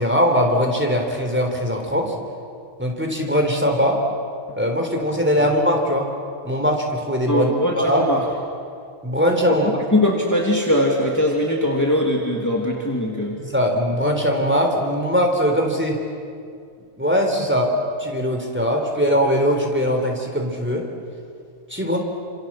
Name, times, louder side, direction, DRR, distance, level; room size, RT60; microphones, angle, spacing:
voice 1, 0.0-2.1 2.8-4.0 4.6-6.1 6.4-7.5 7.8-8.0 9.0-9.8 13.4-16.0 17.0-20.9 21.7-22.0, equal, 10° right, 1 dB, 3.7 m, -21 dB
voice 2, 7.3-8.2 9.9-13.4, left 1 dB, 15° left, -1 dB, 2.5 m, -20 dB
28.5 x 27.0 x 7.5 m, 2.3 s
omnidirectional pair, 1.2 m